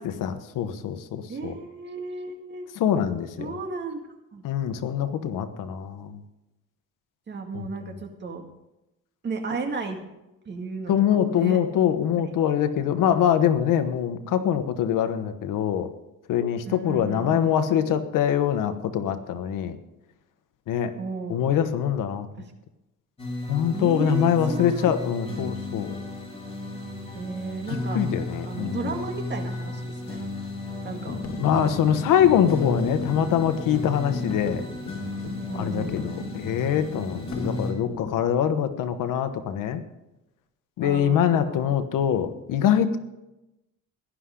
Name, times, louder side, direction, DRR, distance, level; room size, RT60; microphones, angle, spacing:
voice 1, 0.2-1.5 2.8-3.5 4.4-6.2 7.5-7.7 10.9-15.9 16.3-19.8 20.7-20.9 21.3-22.5 23.5-26.0 27.9-29.0 31.4-34.6 35.5-39.8 40.8-43.0, left 9 dB, 80° left, 9 dB, 1.3 m, -24 dB
voice 2, 1.3-2.7 3.4-4.0 4.3-4.4 7.3-8.4 9.2-10.0 10.5-11.6 12.2-12.3 16.7-17.6 21.0-21.4 22.4-22.5 23.7-24.9 27.1-28.0 28.4-30.2 30.8-31.2 35.5-36.5 40.8-41.7, right 4 dB, 35° right, 3 dB, 2.1 m, -34 dB
sound 1, 23.2-37.7, left 2 dB, 20° left, 3.7 m, -34 dB
sound 2, 30.9-38.2, left 5 dB, 55° left, 1.9 m, -36 dB
17.5 x 11.5 x 3.8 m, 0.94 s
cardioid pair, 155°, 32 cm